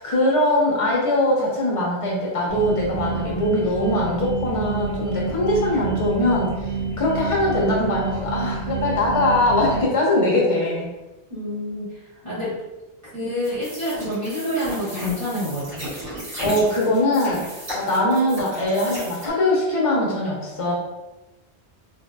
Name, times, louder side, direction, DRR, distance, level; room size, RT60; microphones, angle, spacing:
voice 1, 0.0-6.7 7.0-10.9 12.2-12.4 16.4-17.4 17.7-20.7, left 1 dB, 35° left, -4 dB, 0.8 m, -21 dB
sound 1, 2.5-9.8, right 4 dB, 65° right, 1.2 m, -28 dB
voice 2, 11.3-11.9 12.2-12.5 13.1-15.9, equal, 30° right, -12 dB, 1.2 m, -27 dB
sound 2, 13.4-19.3, right 1 dB, 85° right, 1.8 m, -35 dB
3.4 x 2.5 x 2.2 m, 1.1 s
omnidirectional pair, 1.1 m